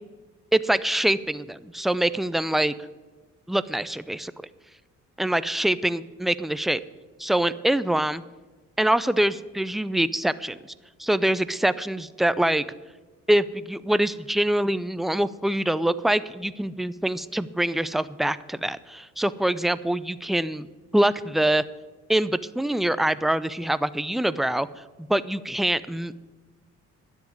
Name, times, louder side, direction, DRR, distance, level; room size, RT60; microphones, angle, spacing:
voice 1, 0.5-2.7 3.5-4.3 5.2-6.8 7.2-8.2 8.8-10.6 11.0-12.7 13.3-20.7 20.9-21.6 22.1-24.7 25.0-26.2, right 1 dB, ahead, 15 dB, 0.4 m, -24 dB
10.5 x 7.2 x 9.3 m, 1.3 s
cardioid pair, 90°, 30 cm